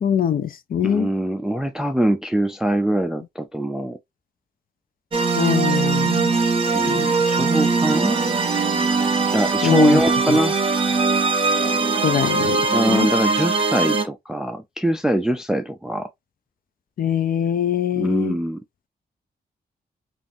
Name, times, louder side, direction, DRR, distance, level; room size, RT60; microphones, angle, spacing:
voice 1, 0.0-1.1 5.4-6.3 6.8-7.1 9.6-10.0 12.0-12.6 12.9-13.1 17.0-18.4, left 8 dB, 60° left, 0.5 m, -22 dB
voice 2, 0.8-4.0 6.7-8.2 9.3-10.6 12.7-16.1 17.9-18.6, right 1 dB, 5° right, 0.3 m, -23 dB
sound 1, 5.1-14.0, right 4 dB, 35° right, 0.7 m, -21 dB
5.2 x 2.5 x 2.6 m
wide cardioid pair, 170°, 17 cm